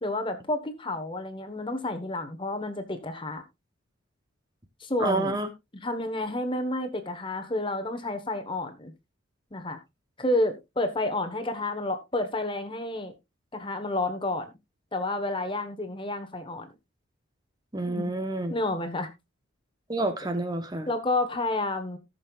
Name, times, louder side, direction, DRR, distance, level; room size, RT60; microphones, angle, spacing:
voice 1, 0.0-3.4 4.8-5.4 5.8-8.9 9.5-9.8 10.2-13.1 13.5-14.5 14.9-16.7 17.9-18.1 18.5-19.1 20.9-22.0, left 2 dB, 25° left, 1.2 m, -30 dB
voice 2, 5.0-5.5 17.7-18.5 19.9-20.9, right 2 dB, 20° right, 0.9 m, -28 dB
18.5 x 6.6 x 2.4 m
head